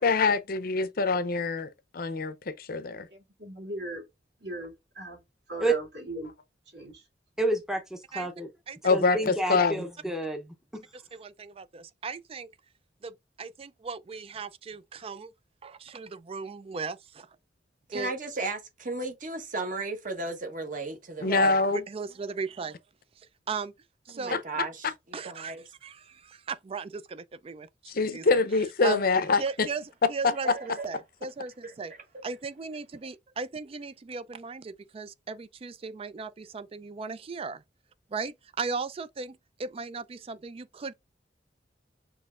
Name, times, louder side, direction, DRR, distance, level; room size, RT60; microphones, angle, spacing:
voice 1, 0.0-3.1 8.8-9.8 21.2-21.8 24.3-24.4 24.8-24.9 27.9-29.7, left 4 dB, 55° left, 0.6 m, -25 dB
voice 2, 3.1-4.0 4.4-5.2 5.5-6.3 6.7-7.1, right 1 dB, 65° right, 3.1 m, -39 dB
voice 3, 7.4-8.5 8.9-10.4 10.7-10.8, right 2 dB, 5° right, 0.7 m, -29 dB
voice 4, 10.9-12.5 13.0-15.3 15.6-17.3 17.9-18.1 21.2-22.7 23.2-23.7 24.1-24.4 25.1-25.6 25.8-27.7 28.1-28.2 28.5-29.0 29.4-29.8 30.1-37.6 38.1-38.3 38.6-41.0, right 5 dB, 30° right, 0.4 m, -37 dB
voice 5, 17.9-21.5 24.1-25.6 30.8-30.9 31.6-31.7, right 3 dB, 45° right, 1.2 m, -35 dB
6.2 x 3.1 x 2.4 m
head